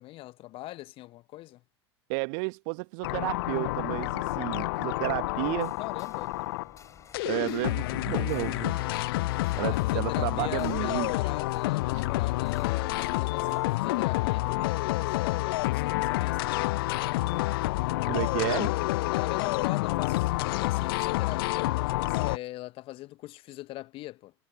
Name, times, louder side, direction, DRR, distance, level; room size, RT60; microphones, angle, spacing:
voice 1, 0.0-1.6 5.8-6.3 9.6-16.5 19.1-24.3, left 17 dB, 40° left, 0.9 m, -41 dB
voice 2, 2.1-5.7 7.2-8.9 9.6-11.1 11.9-12.0 18.0-18.8, right 40 dB or more, 50° right, 1.6 m, -32 dB
sound 1, 3.0-6.8 7.1-22.4, left 19 dB, 55° left, 0.5 m, -28 dB
sound 2, 5.1-13.7, left 6 dB, 20° left, 5.4 m, -55 dB
figure-of-eight pair, 85°, 15 cm